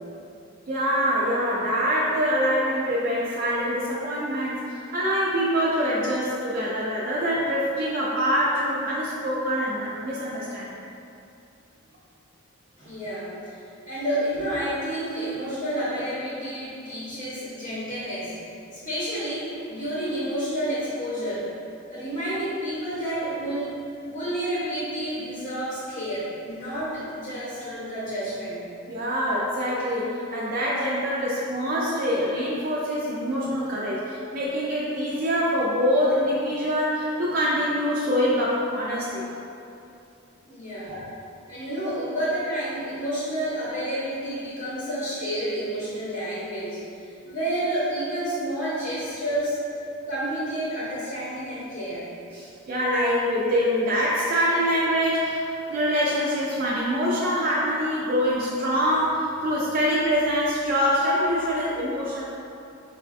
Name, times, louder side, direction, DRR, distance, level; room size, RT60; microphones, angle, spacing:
voice 1, 0.7-10.7 28.9-39.3 40.9-41.0 41.8-41.9 52.3-62.2, equal, 40° right, -6 dB, 0.3 m, -25 dB
voice 2, 12.8-18.3 18.7-21.5 21.9-23.7 24.1-28.6 40.5-41.0 41.5-49.7 50.1-52.1, right 1 dB, 35° left, -10 dB, 0.7 m, -30 dB
4.7 x 2.2 x 2.5 m, 2.7 s
head